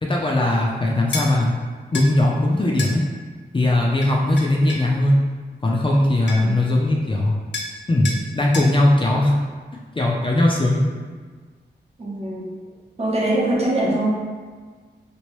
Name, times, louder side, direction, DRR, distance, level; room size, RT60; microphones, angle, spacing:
voice 1, 0.0-1.5 1.9-3.0 3.5-5.2 5.6-7.3 7.9-9.3 9.9-10.8, left 1 dB, 30° left, -2 dB, 0.4 m, -19 dB
sound 1, 1.1-1.3 1.9-2.1 2.8-3.0 4.0-4.9 5.9-6.0 6.3-6.6 7.5-7.8 8.0-8.2 8.5-8.7, left 3 dB, 85° left, 0.5 m, -30 dB
voice 2, 12.0-12.4 13.0-14.1, right 1 dB, 35° right, -5 dB, 0.8 m, -22 dB
3.0 x 2.5 x 3.0 m, 1.5 s
wide cardioid pair, 80°, 18 cm